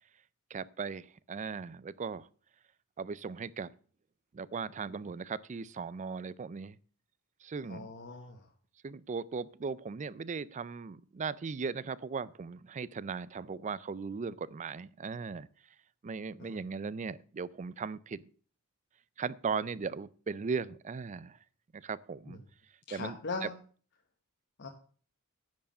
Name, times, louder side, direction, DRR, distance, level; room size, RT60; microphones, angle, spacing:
voice 1, 0.5-2.3 3.0-3.7 4.3-6.8 7.4-7.9 8.8-15.5 16.0-18.2 19.2-21.4 21.7-22.4 22.9-23.5, right 5 dB, 35° right, 19 dB, 0.4 m, -38 dB
voice 2, 7.7-8.5 16.4-16.6 22.3-22.4 22.9-23.6 24.6-24.7, left 3 dB, 50° left, 3 dB, 1.0 m, -40 dB
10.5 x 4.8 x 7.3 m, 0.43 s
head